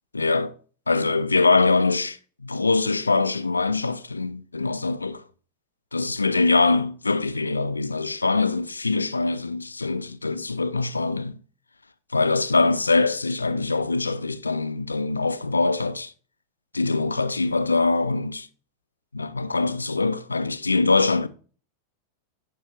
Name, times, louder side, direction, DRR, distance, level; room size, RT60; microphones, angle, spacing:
voice 1, 0.1-0.5 0.9-5.2 5.9-11.4 12.1-16.1 16.7-18.5 19.1-21.3, left 3 dB, 80° left, 0.4 m, -23 dB
9.7 x 4.7 x 2.4 m
figure-of-eight pair, 90°, 0 cm